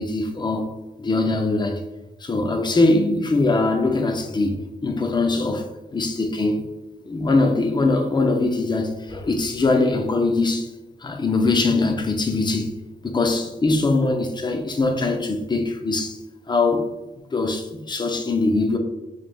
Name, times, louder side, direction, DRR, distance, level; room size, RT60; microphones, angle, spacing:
voice 1, 0.0-1.8 2.2-5.7 5.9-6.6 7.0-10.7 11.0-12.7 13.0-16.2 16.5-16.9 17.3-18.8, left 3 dB, 25° left, 0.6 m, -22 dB
4.0 x 2.6 x 3.4 m
cardioid pair, 90°, 17 cm